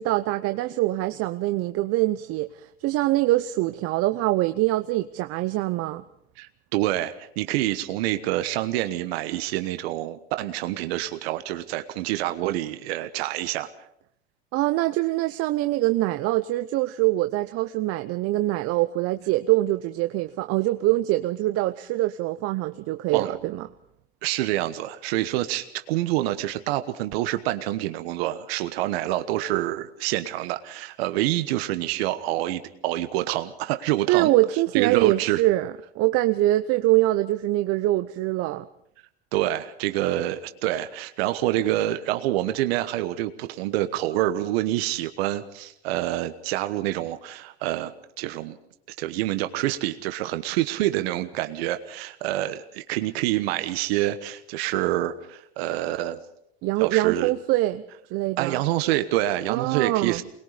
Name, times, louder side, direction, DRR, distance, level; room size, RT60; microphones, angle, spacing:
voice 1, 0.0-6.0 14.5-23.6 34.1-38.7 56.6-57.8 58.1-58.6 59.5-60.2, right 17 dB, 45° right, 10 dB, 0.8 m, -24 dB
voice 2, 6.4-13.7 23.1-23.3 24.2-34.3 34.7-35.4 39.3-47.9 48.2-48.6 49.0-56.2 56.8-57.3 58.4-60.2, right 15 dB, 65° right, 9 dB, 1.3 m, -27 dB
24.5 x 21.0 x 5.1 m, 0.73 s
hypercardioid pair, 105°, 32 cm